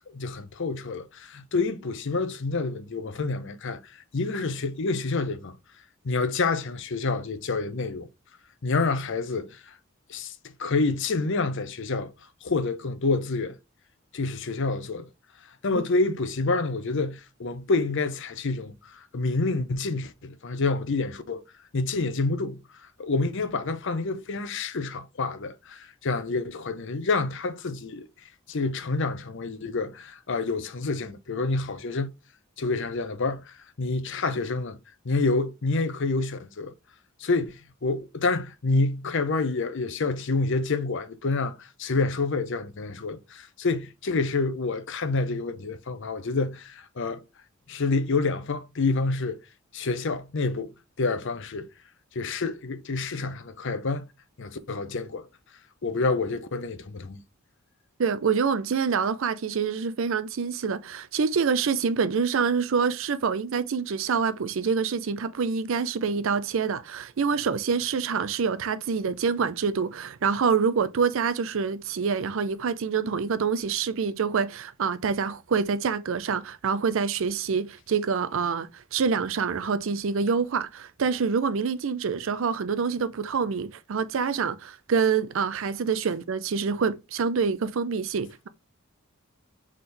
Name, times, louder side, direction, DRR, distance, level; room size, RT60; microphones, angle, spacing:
voice 1, 0.1-5.6 6.0-8.1 8.6-9.7 10.1-12.1 12.4-13.6 14.1-15.1 15.6-21.4 21.7-22.6 23.0-28.1 28.5-32.1 32.6-34.8 35.0-36.7 37.2-47.2 47.7-49.4 49.7-50.7 51.0-51.7 52.1-54.1 54.4-55.3 55.8-57.2, left 3 dB, 60° left, 0.7 m, -28 dB
voice 2, 58.0-88.5, right 5 dB, 65° right, 0.5 m, -26 dB
4.3 x 3.7 x 3.2 m
head